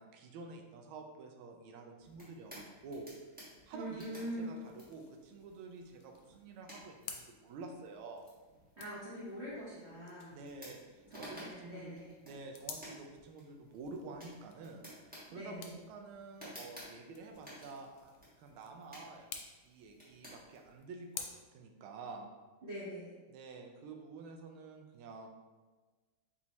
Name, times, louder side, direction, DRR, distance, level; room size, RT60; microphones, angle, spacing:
voice 1, 0.0-3.1 3.7-8.3 10.3-11.9 12.2-14.8 15.3-19.3 19.6-22.3 23.3-25.3, right 3 dB, 80° right, 3 dB, 1.4 m, -49 dB
sound 1, 2.0-20.8, equal, 5° right, 1.0 m, -56 dB
sound 2, 3.2-21.2, left 7 dB, 75° left, 1.3 m, -54 dB
voice 2, 3.7-4.6 8.8-10.4 11.1-12.1 15.3-15.7 22.6-23.1, equal, 50° right, -8 dB, 0.8 m, -43 dB
4.2 x 3.5 x 2.9 m, 1.3 s
omnidirectional pair, 2.3 m